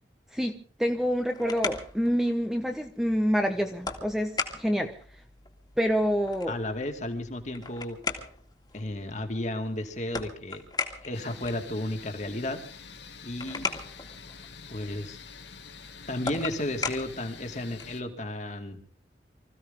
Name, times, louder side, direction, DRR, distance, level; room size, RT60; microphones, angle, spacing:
voice 1, 0.3-4.9 5.8-6.6, equal, ahead, 5 dB, 1.1 m, -27 dB
sound 1, 1.0-18.1, left 4 dB, 25° left, 2.2 m, -39 dB
voice 2, 6.5-8.0 8.7-10.6 11.0-12.6 13.2-13.7 14.7-15.2 16.1-18.8, left 1 dB, 40° left, 5 dB, 2.3 m, -33 dB
sound 2, 11.1-18.0, left 6 dB, 75° left, 2.3 m, -47 dB
25.5 x 15.5 x 3.7 m, 0.42 s
head